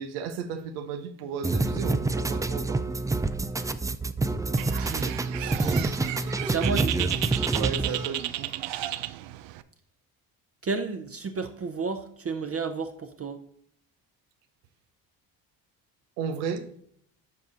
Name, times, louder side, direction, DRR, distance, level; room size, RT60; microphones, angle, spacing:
voice 1, 0.0-2.8 7.5-8.5 16.2-16.7, right 6 dB, 90° right, 0.9 m, -34 dB
sound 1, 1.4-8.1, right 3 dB, 10° right, 0.3 m, -27 dB
Bird, 4.6-9.6, right 14 dB, 65° right, 0.6 m, -33 dB
voice 2, 4.8-5.6 5.8-6.0 6.3-7.2 10.6-13.4, right 4 dB, 30° right, 0.8 m, -32 dB
7.6 x 5.4 x 3.9 m
hypercardioid pair, 60°, 47 cm